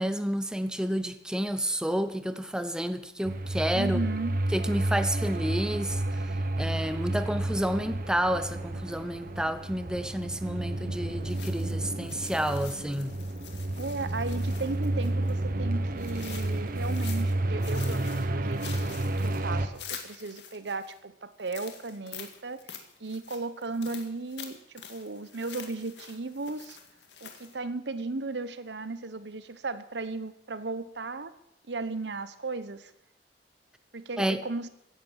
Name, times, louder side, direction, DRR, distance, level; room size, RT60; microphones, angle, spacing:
voice 1, 0.0-4.0 4.5-13.2 34.2-34.4, equal, 5° right, 0.8 m, -30 dB
sound 1, 3.2-19.7, right 1 dB, 55° right, 1.1 m, -31 dB
voice 2, 3.7-4.4 13.8-22.6 23.0-26.8 27.2-31.3 31.7-32.9 33.9-34.7, right 3 dB, 80° right, 1.0 m, -35 dB
sound 2, 11.3-15.4 16.0-17.4 17.6-20.9 21.4-27.6, left 8 dB, 85° left, 2.0 m, -46 dB
15.5 x 10.5 x 7.3 m
head